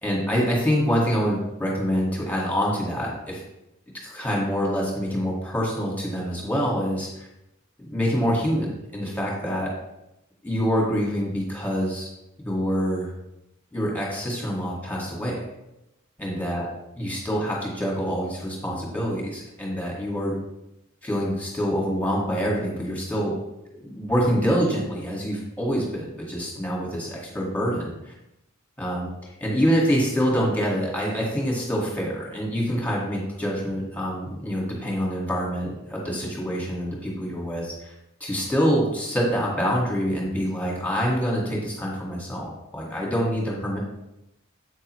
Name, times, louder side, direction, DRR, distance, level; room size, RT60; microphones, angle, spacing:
voice 1, 0.0-3.4 4.0-7.3 7.8-9.7 10.4-12.1 12.4-13.1 13.7-15.4 16.2-16.6 17.0-20.4 21.0-23.4 23.8-28.1 28.8-29.1 29.4-37.9 38.2-43.8, equal, 10° left, -3 dB, 2.0 m, -26 dB
8.2 x 6.5 x 3.2 m, 0.89 s
head